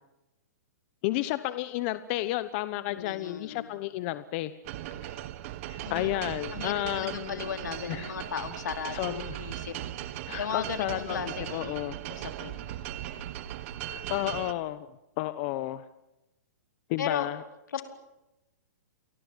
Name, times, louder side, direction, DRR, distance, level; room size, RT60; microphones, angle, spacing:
voice 1, 1.0-4.5 5.7-7.5 7.9-8.1 8.9-9.3 10.3-11.2 11.5-12.0 13.9-14.9 15.2-15.8 16.9-17.4, left 16 dB, 40° left, 13 dB, 1.0 m, -32 dB
voice 2, 2.9-3.7 5.8-6.1 6.5-9.7 10.0-11.8 12.1-12.7 17.0-17.3 17.7-17.8, left 7 dB, 85° left, 5 dB, 3.9 m, -36 dB
sound 1, 4.6-14.5, right 13 dB, 45° right, 1.6 m, -38 dB
29.0 x 20.5 x 7.4 m, 0.96 s
hypercardioid pair, 145°, 10 cm